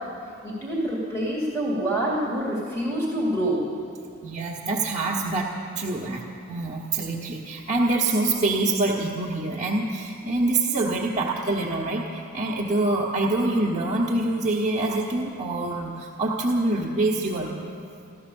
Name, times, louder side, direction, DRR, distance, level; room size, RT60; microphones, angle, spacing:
voice 1, 0.4-3.6, right 1 dB, 15° left, -5 dB, 2.3 m, -26 dB
voice 2, 4.2-17.7, right 2 dB, 15° right, -7 dB, 1.3 m, -25 dB
14.5 x 13.5 x 7.0 m, 2.5 s
head